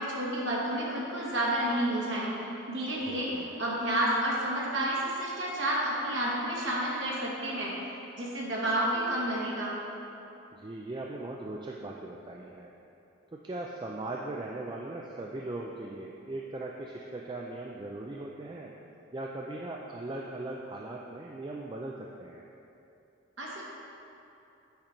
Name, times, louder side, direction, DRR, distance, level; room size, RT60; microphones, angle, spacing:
voice 1, 0.0-2.3 2.7-3.3 3.6-7.8 8.2-9.7 23.4-23.6, right 1 dB, 65° right, -5 dB, 1.7 m, -30 dB
voice 2, 3.1-3.5 10.5-12.7 13.3-18.7 19.1-22.4, right 2 dB, 25° right, -1 dB, 0.3 m, -39 dB
8.7 x 5.1 x 4.4 m, 2.9 s
head